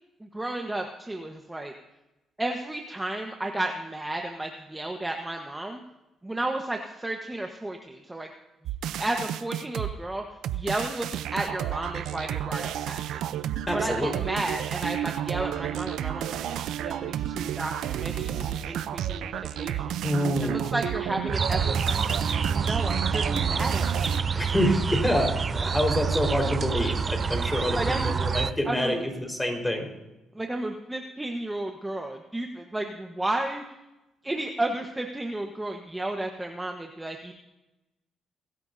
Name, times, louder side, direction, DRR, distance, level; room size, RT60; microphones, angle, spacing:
voice 1, 0.2-1.7 2.4-5.8 6.2-8.3 9.0-10.2 10.5-13.2 13.7-20.0 20.4-24.2 27.7-28.1 28.6-28.9 30.3-33.6 34.2-37.3, right 1 dB, 15° right, 2 dB, 1.3 m, -33 dB
sound 1, 8.7-9.9 10.4-24.2, right 11 dB, 85° right, 0.6 m, -31 dB
voice 2, 13.7-14.1 20.0-20.6 24.3-29.9, left 1 dB, 10° left, 2 dB, 4.6 m, -27 dB
sound 2, 21.3-28.5, right 5 dB, 40° right, 0.5 m, -27 dB
25.0 x 13.0 x 2.8 m, 0.98 s
cardioid pair, 90°, 0 cm